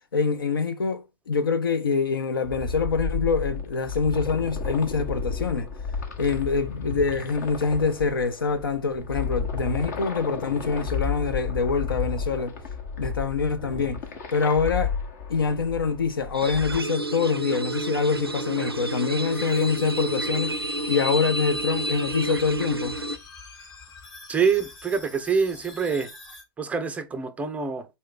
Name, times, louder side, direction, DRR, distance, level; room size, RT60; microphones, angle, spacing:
voice 1, 0.1-5.7 6.2-12.6 13.0-14.0 14.3-14.9 15.3-20.6 20.9-23.0, left 5 dB, 65° left, 0.7 m, -25 dB
sound 1, 2.4-16.8, left 5 dB, 45° left, 1.2 m, -32 dB
sound 2, 16.3-23.2, right 1 dB, 90° right, 0.5 m, -30 dB
Strange - Supercollider, 19.3-26.4, left 3 dB, 30° left, 1.2 m, -45 dB
voice 2, 24.3-26.1 26.6-27.9, right 6 dB, 10° right, 0.5 m, -25 dB
4.1 x 3.2 x 3.7 m
figure-of-eight pair, 105°, 12 cm